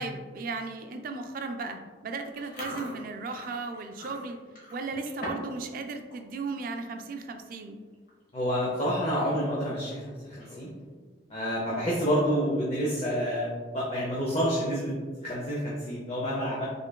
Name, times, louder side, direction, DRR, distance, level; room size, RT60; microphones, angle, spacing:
voice 1, 0.0-4.4 4.7-7.8 11.7-11.8, right 3 dB, 50° right, 6 dB, 0.3 m, -36 dB
Chewing mastication, 2.3-5.6 5.9-6.2 6.6-6.9 7.6-7.7 7.9-8.3 8.7-8.8 10.2-10.8, equal, 50° left, 1.0 m, -41 dB
voice 2, 8.3-10.7 11.3-16.7, equal, 35° left, -5 dB, 0.6 m, -29 dB
3.7 x 3.4 x 2.2 m, 1.5 s
head